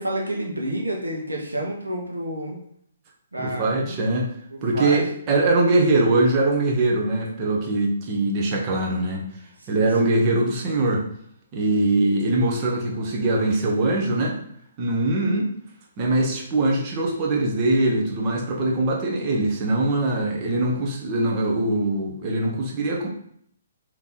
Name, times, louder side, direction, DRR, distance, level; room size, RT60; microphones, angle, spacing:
voice 1, 0.0-2.6 3.3-4.0 4.5-5.1 9.7-10.1, right 1 dB, 85° right, -1 dB, 1.1 m, -29 dB
voice 2, 3.4-4.3 4.6-9.3 9.7-11.0 11.5-14.4 14.8-15.5 16.0-23.1, right 2 dB, 35° right, -1 dB, 1.0 m, -22 dB
3.5 x 3.0 x 4.1 m, 0.68 s
figure-of-eight pair, 130°, 0 cm